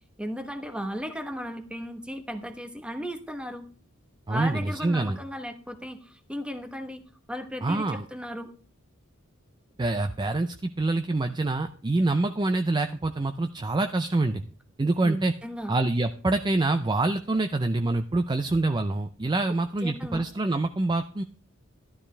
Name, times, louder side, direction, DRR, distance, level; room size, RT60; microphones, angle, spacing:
voice 1, 0.2-3.7 4.3-7.0 7.3-8.5 15.0-15.7 19.8-20.2, equal, 5° right, 7 dB, 1.1 m, -35 dB
voice 2, 4.3-5.2 7.6-8.0 9.8-14.4 14.8-15.3 15.7-21.2, right 2 dB, 20° right, 8 dB, 0.4 m, -26 dB
13.5 x 12.0 x 3.3 m, 0.42 s
head